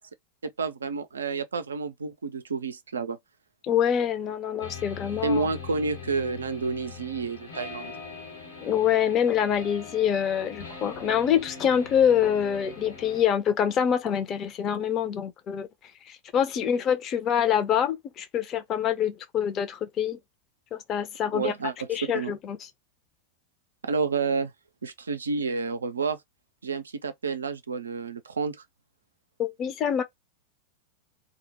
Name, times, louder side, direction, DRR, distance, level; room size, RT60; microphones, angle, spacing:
voice 1, 0.4-3.2 5.2-7.9 21.3-22.3 23.8-24.5 24.8-26.2 26.6-28.6, right 4 dB, 75° right, 0.4 m, -30 dB
voice 2, 3.7-5.4 8.6-15.7 16.1-20.2 20.7-21.5 21.9-22.6 29.4-30.0, left 9 dB, 35° left, 0.6 m, -25 dB
sound 1, 4.6-13.2, left 5 dB, 75° left, 1.1 m, -42 dB
2.2 x 2.0 x 2.8 m
figure-of-eight pair, 90°, 0 cm